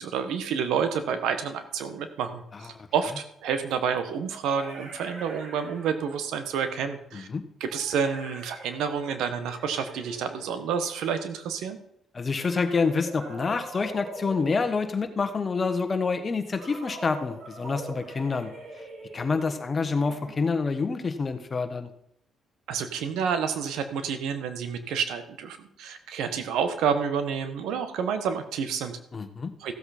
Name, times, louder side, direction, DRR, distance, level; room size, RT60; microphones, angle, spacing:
voice 1, 0.0-7.3 7.6-11.8 22.7-29.0 29.6-29.7, right 7 dB, 85° right, 9 dB, 1.3 m, -29 dB
sound 1, 2.5-2.6 4.0-6.4 7.6-11.1 12.3-15.3 16.5-20.8, right 2 dB, 60° right, 5.2 m, -44 dB
voice 2, 12.1-18.5 19.1-21.9 29.1-29.5, left 4 dB, 35° left, 9 dB, 1.4 m, -27 dB
15.0 x 7.9 x 4.4 m, 0.71 s
cardioid pair, 90°, 0 cm